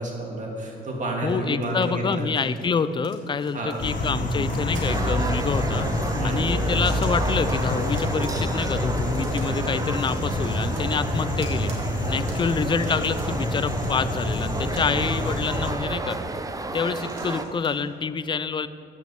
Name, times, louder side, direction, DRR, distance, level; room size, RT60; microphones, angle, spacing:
voice 1, 0.0-2.2 3.5-3.8 6.1-6.4, right 1 dB, 40° right, -1 dB, 2.3 m, -30 dB
sound 1, 0.6-1.0 1.3-4.1 4.3-6.2 6.7-8.5 8.8-15.0 15.7-15.8 16.7-17.8, right 3 dB, 80° right, 2.1 m, -44 dB
voice 2, 1.2-5.9 6.2-11.7 12.1-16.2 16.7-18.7, left 5 dB, 25° left, 13 dB, 0.4 m, -27 dB
sound 2, 3.8-15.7, left 1 dB, 40° left, 1.3 m, -27 dB
sound 3, 4.9-17.4, right 2 dB, 15° right, 0.6 m, -32 dB
9.1 x 5.4 x 7.7 m, 2.6 s
cardioid pair, 90°, 20 cm